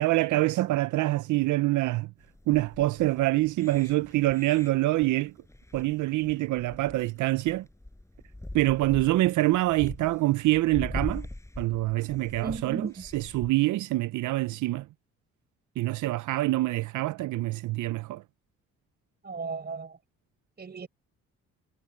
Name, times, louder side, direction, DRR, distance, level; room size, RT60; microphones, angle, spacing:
voice 1, 0.0-2.1 2.5-5.3 5.7-7.7 8.5-11.3 11.6-12.9 13.1-14.9 15.8-18.2, right 18 dB, 80° right, 0.6 m, -25 dB
sound 1, 2.2-13.5, left 1 dB, 10° left, 5.2 m, -42 dB
voice 2, 12.4-13.1 19.2-20.0 20.6-20.9, right 4 dB, 35° right, 4.8 m, -35 dB
cardioid pair, 90°, 30 cm